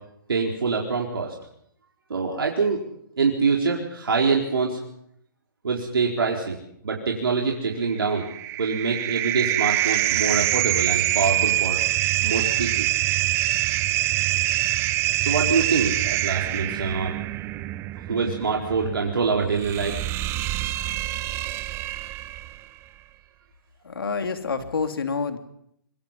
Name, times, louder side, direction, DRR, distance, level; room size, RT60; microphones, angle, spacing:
voice 1, 0.3-1.3 2.1-2.8 3.2-4.8 5.6-6.6 6.8-8.3 8.6-11.8 12.2-12.9 15.2-17.1 18.1-19.9, right 5 dB, 85° right, -1 dB, 4.4 m, -25 dB
sound 1, 8.0-22.6, right 15 dB, 20° right, 0.9 m, -25 dB
voice 2, 23.8-25.4, left 5 dB, 85° left, 6 dB, 3.3 m, -27 dB
25.0 x 23.5 x 5.8 m, 0.73 s
hypercardioid pair, 145°, 12 cm